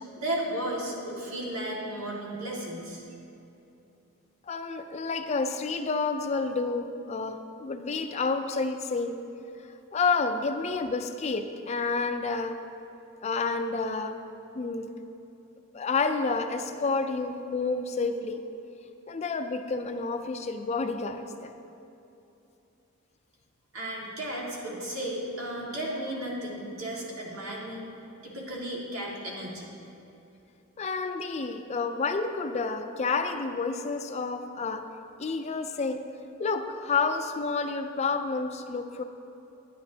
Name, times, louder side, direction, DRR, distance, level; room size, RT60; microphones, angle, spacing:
voice 1, 0.2-3.0 23.7-27.9 28.2-29.7, right 1 dB, 85° right, -4 dB, 1.9 m, -34 dB
voice 2, 4.5-9.2 9.9-12.6 13.2-14.2 14.5-14.9 15.7-18.4 19.1-21.5 30.8-34.8 35.2-36.0 36.4-39.0, left 4 dB, 35° left, 8 dB, 0.4 m, -29 dB
10.0 x 9.9 x 2.8 m, 2.9 s
head